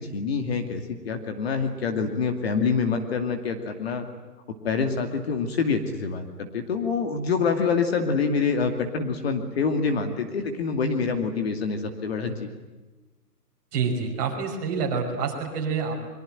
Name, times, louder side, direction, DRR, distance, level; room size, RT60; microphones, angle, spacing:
voice 1, 0.0-4.1 4.6-12.5, left 5 dB, 40° left, 6 dB, 2.5 m, -26 dB
voice 2, 13.7-15.9, right 5 dB, 25° right, 0 dB, 5.6 m, -27 dB
24.5 x 23.5 x 9.1 m, 1.2 s
hypercardioid pair, 160°, 48 cm